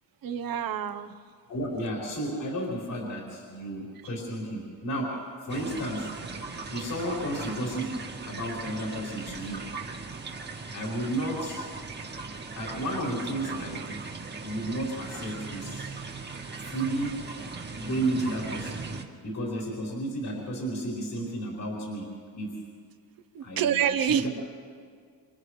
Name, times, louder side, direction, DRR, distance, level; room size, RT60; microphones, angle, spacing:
voice 1, 0.2-1.1 23.3-24.3, right 9 dB, 55° right, 7 dB, 1.1 m, -27 dB
voice 2, 1.5-6.1 6.7-8.0 8.2-9.6 10.7-11.6 12.5-13.9 14.4-15.9 16.6-17.2 17.7-18.8 19.2-22.1 22.3-22.6 23.4-24.3, right 1 dB, 50° left, -4 dB, 4.7 m, -32 dB
sound 1, 5.5-19.0, right 4 dB, 25° right, 1.7 m, -39 dB
29.0 x 29.0 x 3.3 m, 2.1 s
cardioid pair, 155°, 42 cm